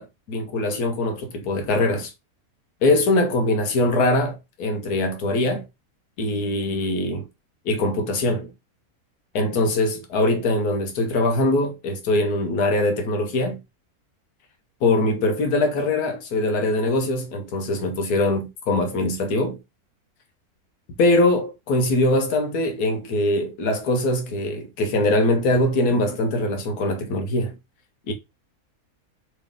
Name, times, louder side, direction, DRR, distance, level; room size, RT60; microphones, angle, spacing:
voice 1, 0.0-2.1 2.8-5.6 6.2-7.3 7.6-8.5 9.3-13.6 14.8-19.6 21.0-27.5 28.1-28.2, left 2 dB, 90° left, 1.4 m, -22 dB
3.1 x 2.9 x 3.6 m
omnidirectional pair, 1.6 m